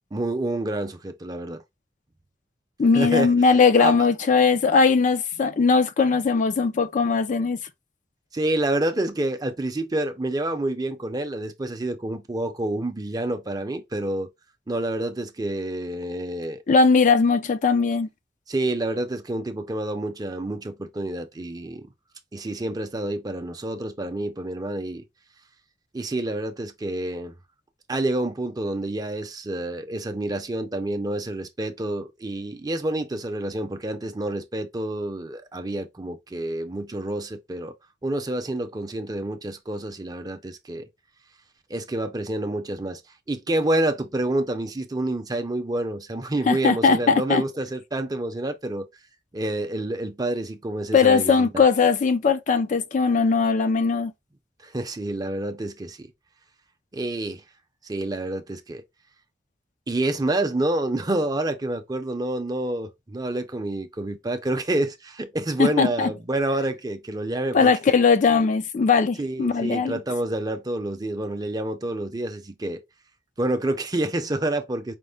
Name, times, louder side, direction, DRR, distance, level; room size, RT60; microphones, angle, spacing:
voice 1, 0.1-1.6 2.9-4.1 8.3-14.3 14.7-16.6 18.5-21.9 22.3-25.0 25.9-27.3 27.9-37.7 38.0-40.9 41.7-43.0 43.3-48.9 49.3-51.6 54.6-56.1 56.9-57.4 57.8-58.8 59.9-67.9 69.2-72.8 73.4-74.9, right 1 dB, 20° right, 0.6 m, -28 dB
voice 2, 2.8-7.6 16.7-18.1 46.5-47.4 50.9-54.1 65.6-66.1 67.5-70.0, left 5 dB, 45° left, 0.4 m, -19 dB
5.1 x 2.1 x 3.4 m
head